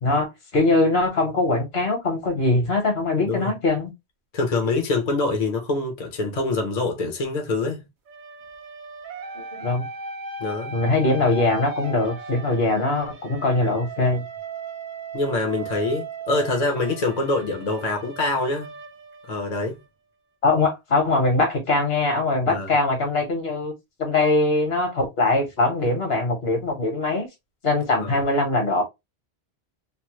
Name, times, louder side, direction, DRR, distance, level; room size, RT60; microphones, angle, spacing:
voice 1, 0.0-3.9 9.3-9.9 10.7-14.2 20.4-23.7 24.0-27.3 27.6-28.8, left 2 dB, 70° left, 1.4 m, -22 dB
voice 2, 4.3-7.8 10.4-10.8 15.1-18.7 19.3-19.8 22.5-22.7 27.9-28.2, left 2 dB, 45° left, 0.7 m, -25 dB
sound 1, 8.1-19.9, right 3 dB, 55° right, 0.6 m, -37 dB
3.1 x 2.1 x 3.0 m
omnidirectional pair, 1.1 m